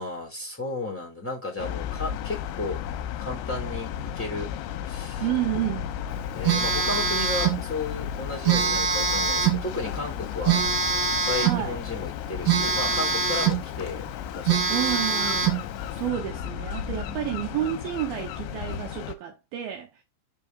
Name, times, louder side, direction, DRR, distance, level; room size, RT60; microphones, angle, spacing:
voice 1, 0.0-2.8 3.2-4.5 4.9-5.3 6.3-10.6 11.3-15.1 16.8-17.3, left 2 dB, 5° left, 2.5 m, -34 dB
sound 1, 1.6-19.2, left 9 dB, 90° left, 3.1 m, -34 dB
voice 2, 5.2-6.0 11.4-11.8 14.7-15.5 15.9-20.0, right 13 dB, 75° right, 2.2 m, -30 dB
Telephone, 6.4-7.6 8.4-9.6 10.5-11.6 12.5-13.6 14.1-14.2 14.5-15.6, right 6 dB, 55° right, 3.8 m, -23 dB
6.6 x 5.5 x 3.5 m
omnidirectional pair, 5.4 m